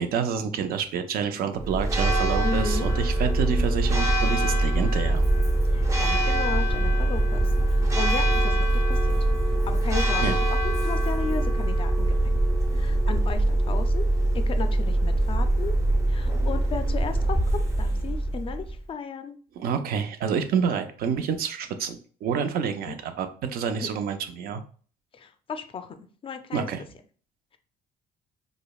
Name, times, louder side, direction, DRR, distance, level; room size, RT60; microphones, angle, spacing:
voice 1, 0.0-5.2 10.2-10.4 19.6-24.6 26.5-26.8, right 7 dB, 60° right, 8 dB, 0.5 m, -28 dB
Church bell, 1.6-18.8, right 1 dB, 20° right, 0.6 m, -23 dB
voice 2, 2.4-2.9 5.7-9.2 9.5-12.3 12.7-14.0 14.3-15.7 16.1-19.4 22.6-23.0 23.8-23.9 25.1-26.7, left 5 dB, 30° left, 8 dB, 0.4 m, -35 dB
5.0 x 2.1 x 2.3 m, 0.43 s
cardioid pair, 110°, 17 cm